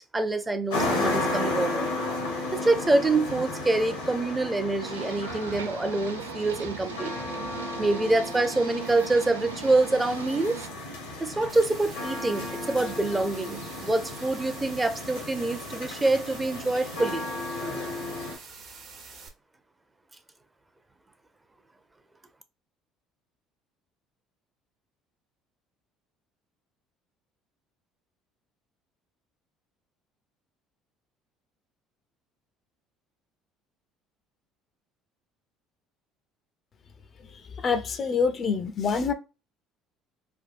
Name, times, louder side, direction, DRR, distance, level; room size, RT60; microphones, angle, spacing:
voice 1, 0.1-1.9 2.5-7.1 7.8-10.6 11.2-17.3, right 2 dB, 20° right, 0.6 m, -26 dB
sound 1, 0.7-18.4, left 2 dB, 80° left, 1.0 m, -34 dB
sound 2, 4.8-10.7, right 7 dB, 85° right, 0.3 m, -40 dB
sound 3, 11.5-19.3, right 5 dB, 50° right, 0.8 m, -46 dB
voice 2, 37.3-39.1, left 5 dB, 45° left, 0.5 m, -26 dB
3.4 x 2.2 x 2.5 m
hypercardioid pair, 60°, 0 cm